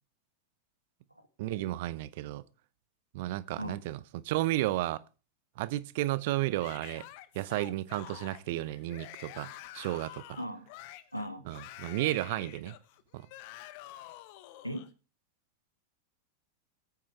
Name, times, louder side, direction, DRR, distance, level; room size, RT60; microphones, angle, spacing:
voice 1, 1.4-2.4 3.1-5.0 5.6-7.0 7.3-10.4 11.5-12.7 13.1-13.3, right 16 dB, 50° right, 0.7 m, -33 dB
Yell / Screaming, 6.6-14.9, left 15 dB, 45° left, 1.0 m, -48 dB
voice 2, 10.4-10.7 11.1-11.5 14.6-14.8, equal, 90° right, 1.6 m, -37 dB
19.5 x 8.7 x 3.4 m
figure-of-eight pair, 90°, 0 cm